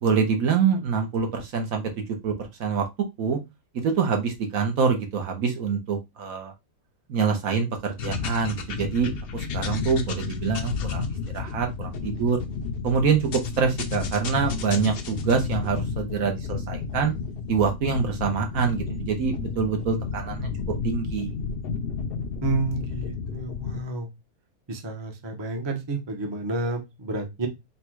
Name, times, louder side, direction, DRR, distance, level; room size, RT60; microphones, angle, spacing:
voice 1, 0.0-2.9 3.2-3.4 3.7-6.5 7.1-12.4 12.8-17.1 17.5-20.5 20.8-21.3, right 5 dB, 70° right, 4 dB, 1.3 m, -25 dB
sound 1, 8.0-23.8, left 5 dB, 55° left, 0.6 m, -32 dB
voice 2, 22.4-24.1 24.7-27.5, right 3 dB, 25° right, 4 dB, 0.6 m, -30 dB
4.2 x 2.2 x 4.5 m, 0.21 s
omnidirectional pair, 1.6 m